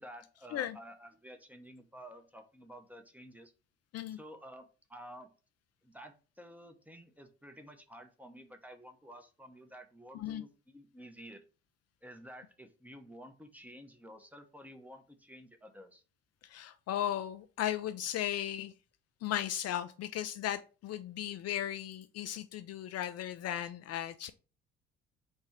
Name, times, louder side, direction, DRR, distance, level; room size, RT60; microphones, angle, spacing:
voice 1, 0.0-3.5 4.1-5.3 5.8-11.4 12.0-16.0, equal, 5° right, 6 dB, 0.9 m, -51 dB
voice 2, 16.4-18.7 19.2-24.3, left 11 dB, 50° left, 9 dB, 0.4 m, -36 dB
4.3 x 2.3 x 4.5 m, 0.34 s
hypercardioid pair, 50°, 32 cm